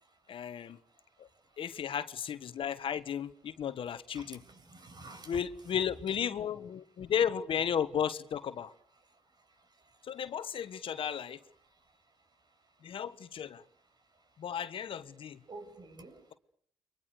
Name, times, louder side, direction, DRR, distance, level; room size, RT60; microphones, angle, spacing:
voice 1, 0.3-0.8 1.2-1.3 1.6-4.4 5.3-8.7 10.0-11.4 12.8-13.6 14.4-15.4, left 8 dB, 60° left, 1.5 m, -34 dB
voice 2, 4.1-5.4 15.5-16.2, right 2 dB, 45° right, 7.9 m, -48 dB
30.0 x 24.0 x 6.7 m
hypercardioid pair, 45°, 10 cm